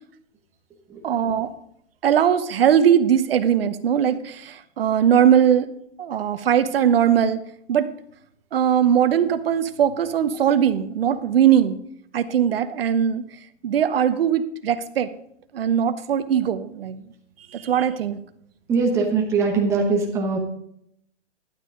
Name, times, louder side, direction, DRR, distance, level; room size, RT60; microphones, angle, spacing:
voice 1, 1.0-1.5 2.0-5.7 6.0-7.4 7.7-7.9 8.5-11.8 12.1-13.3 13.6-15.1 15.5-17.0 17.5-18.2, right 9 dB, 55° right, 11 dB, 0.9 m, -20 dB
voice 2, 18.7-20.4, right 4 dB, 10° right, 0 dB, 0.9 m, -21 dB
12.0 x 9.3 x 3.8 m, 0.72 s
hypercardioid pair, 165°, 36 cm